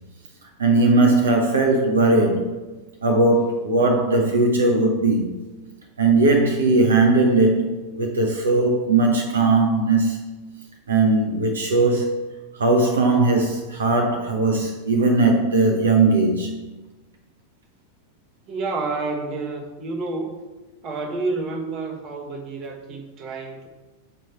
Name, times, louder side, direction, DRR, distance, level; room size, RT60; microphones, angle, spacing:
voice 1, 0.6-2.5 3.0-5.3 6.0-10.2 10.9-16.6, right 2 dB, 70° right, 0.9 m, -19 dB
voice 2, 18.5-20.4 20.8-23.7, right 3 dB, 35° right, 1.3 m, -29 dB
9.0 x 3.2 x 5.6 m
figure-of-eight pair, 90°, 0 cm